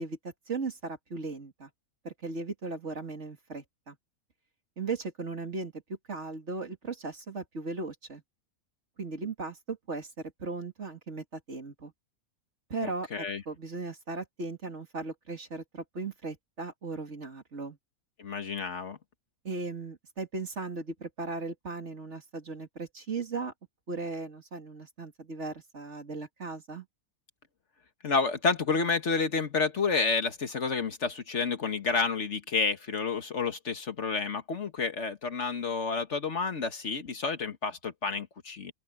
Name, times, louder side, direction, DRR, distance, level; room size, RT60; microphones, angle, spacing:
voice 1, 0.0-1.7 2.0-4.0 4.8-5.7 6.1-8.2 9.0-10.1 10.4-11.9 12.7-17.8 19.4-23.5 23.9-26.9, right 3 dB, 50° right, 2.7 m, -37 dB
voice 2, 12.8-13.4 18.2-19.0 28.0-38.7, left 4 dB, 55° left, 1.6 m, -30 dB
open air
omnidirectional pair, 1.5 m